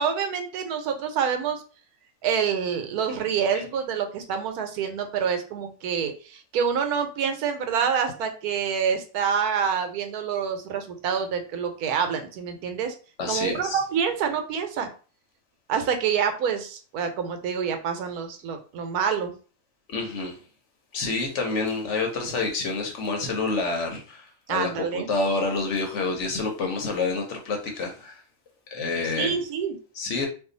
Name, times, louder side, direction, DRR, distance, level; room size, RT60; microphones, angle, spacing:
voice 1, 0.0-1.6 2.2-12.9 13.3-14.9 15.7-19.3 24.5-25.1 29.2-29.8, right 7 dB, 85° right, 1.2 m, -27 dB
voice 2, 13.2-13.8 19.9-20.4 20.9-28.2 28.7-29.3 30.0-30.3, left 3 dB, 60° left, 0.9 m, -28 dB
2.7 x 2.4 x 3.8 m
omnidirectional pair, 1.6 m